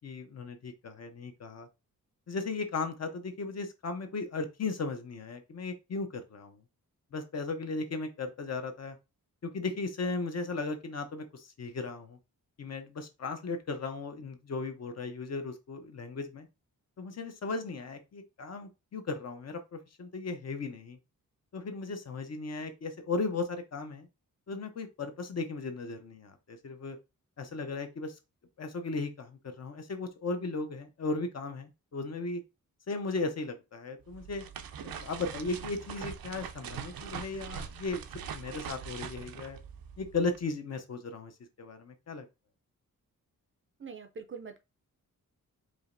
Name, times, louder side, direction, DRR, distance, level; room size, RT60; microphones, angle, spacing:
voice 1, 0.0-1.7 2.3-6.6 7.1-9.0 9.4-12.2 12.6-16.5 17.0-21.0 21.5-24.1 24.5-27.0 27.4-28.2 28.6-32.4 32.9-34.4 34.8-38.1 38.3-39.6 40.0-41.3 41.6-42.3, left 3 dB, 50° left, 0.7 m, -36 dB
sound 1, 34.0-40.4, right 7 dB, 85° right, 0.5 m, -42 dB
voice 2, 43.8-44.6, right 5 dB, 35° right, 0.4 m, -43 dB
4.8 x 2.9 x 2.5 m
wide cardioid pair, 180°, 34 cm